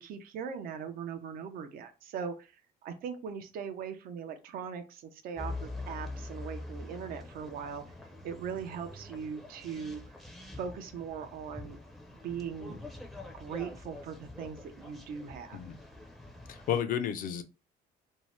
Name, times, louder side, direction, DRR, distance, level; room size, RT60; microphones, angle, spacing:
voice 1, 0.0-2.5 2.8-7.8 8.2-10.0 10.5-11.8 12.2-12.8 13.3-15.6, right 7 dB, 60° right, 7 dB, 0.5 m, -40 dB
sound 1, 5.4-16.8, left 2 dB, ahead, 0.5 m, -45 dB
voice 2, 16.5-17.4, left 9 dB, 55° left, 9 dB, 0.5 m, -32 dB
2.7 x 2.0 x 3.1 m, 0.31 s
cardioid pair, 110°, 17 cm